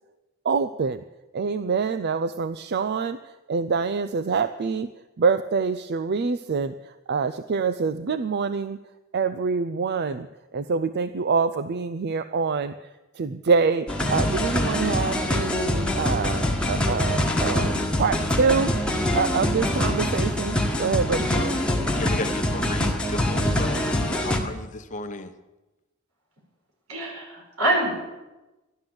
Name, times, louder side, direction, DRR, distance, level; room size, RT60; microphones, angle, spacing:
voice 1, 0.4-1.0 1.3-8.8 9.1-10.3 10.5-21.6, right 5 dB, 50° right, 13 dB, 0.4 m, -26 dB
sound 1, 13.9-24.4, left 1 dB, 5° left, 1.5 m, -24 dB
voice 2, 21.9-25.3, left 2 dB, 35° left, 9 dB, 0.9 m, -34 dB
voice 3, 26.9-28.0, right 1 dB, 85° right, -2 dB, 5.6 m, -25 dB
13.0 x 11.5 x 7.8 m, 1.1 s
head